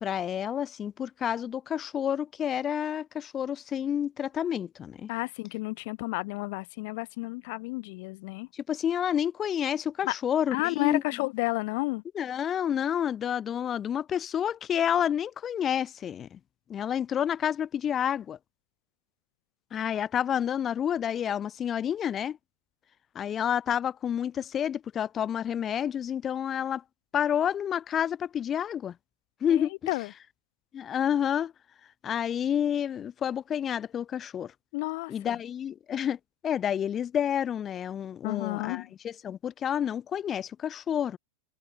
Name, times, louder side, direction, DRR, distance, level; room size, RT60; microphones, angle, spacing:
voice 1, 0.0-5.1 8.5-11.0 12.1-16.4 16.7-18.4 19.7-22.4 23.1-26.8 27.1-28.9 29.4-29.7 30.7-31.5 32.0-34.5 35.1-36.2 36.4-41.2, left 9 dB, 25° left, 2.3 m, -29 dB
voice 2, 5.1-8.5 10.0-10.1 10.5-12.0 29.5-30.1 34.7-35.4 38.2-38.9, left 25 dB, 50° left, 2.5 m, -31 dB
figure-of-eight pair, 90°, 0 cm